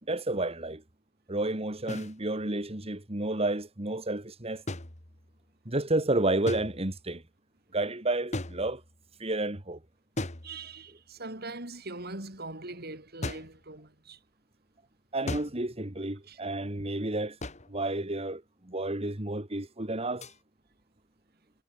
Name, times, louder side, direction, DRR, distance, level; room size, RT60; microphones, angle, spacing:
voice 1, 0.1-0.8 1.3-4.6 5.7-7.2 7.7-8.8 9.2-9.8 15.1-17.4 17.7-20.3, right 2 dB, 30° right, 2.2 m, -31 dB
sound 1, 1.9-2.1 4.7-5.5 6.5-7.1 8.3-9.1 10.2-11.0 13.2-13.6 15.3-15.8 17.4-17.8 20.2-20.4, left 1 dB, 35° left, 2.4 m, -38 dB
voice 2, 10.4-14.2 16.3-16.4, right 2 dB, 50° right, 7.1 m, -41 dB
head